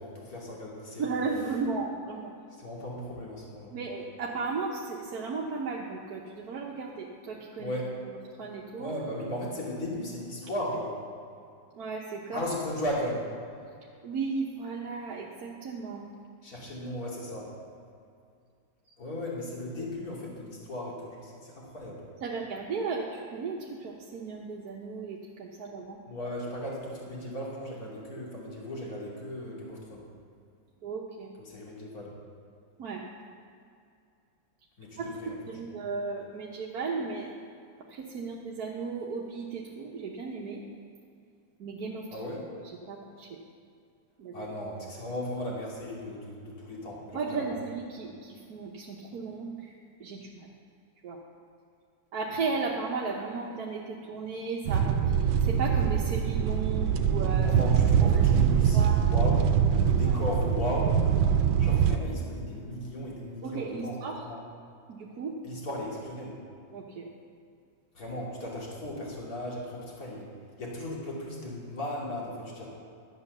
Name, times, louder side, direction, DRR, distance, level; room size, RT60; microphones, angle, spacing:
voice 1, 0.0-1.3 2.5-3.7 7.6-7.9 8.8-10.9 12.3-13.2 16.4-17.5 19.0-22.0 26.1-30.0 31.4-32.2 34.8-35.4 35.7-35.8 42.1-42.5 44.3-47.6 57.4-59.5 59.8-61.0 61.6-64.4 65.4-66.4 67.9-70.3 70.6-72.7, left 1 dB, 50° left, -4 dB, 3.1 m, -36 dB
voice 2, 1.0-2.3 3.7-7.7 8.4-8.9 11.7-12.4 14.0-16.0 22.2-26.0 30.8-31.3 32.8-33.0 35.0-37.3 37.9-40.6 41.6-42.1 42.9-43.4 44.2-44.5 47.1-49.7 50.0-50.5 51.0-51.2 52.1-57.5 58.0-58.3 58.7-59.0 60.1-60.2 63.4-64.2 64.9-65.4 66.7-67.1, right 4 dB, 55° right, -2 dB, 1.4 m, -35 dB
sound 1, 54.7-62.0, right 8 dB, 80° right, 1.4 m, -23 dB
11.5 x 8.9 x 6.7 m, 2.4 s
omnidirectional pair, 2.1 m